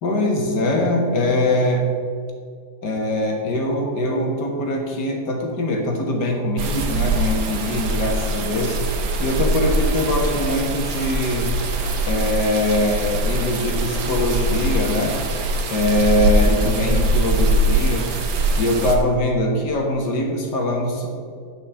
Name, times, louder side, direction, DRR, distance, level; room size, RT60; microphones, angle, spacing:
voice 1, 0.0-1.9 2.8-8.8 9.2-11.5 12.1-15.2 15.7-18.1 18.5-21.1, left 1 dB, 65° left, 1 dB, 2.2 m, -22 dB
sound 1, 6.6-19.0, right 1 dB, 55° right, 1.4 m, -22 dB
10.5 x 5.4 x 7.2 m, 2.2 s
omnidirectional pair, 1.9 m